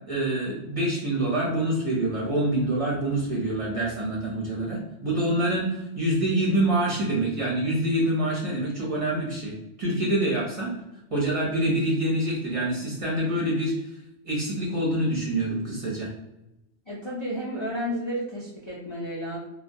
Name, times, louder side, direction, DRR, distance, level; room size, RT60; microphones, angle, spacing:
voice 1, 0.1-10.7 11.1-13.7 14.2-16.1, right 1 dB, 35° right, -5 dB, 0.7 m, -26 dB
voice 2, 16.9-19.4, equal, 50° left, -6 dB, 0.3 m, -32 dB
2.2 x 2.2 x 2.6 m, 0.89 s
omnidirectional pair, 1.2 m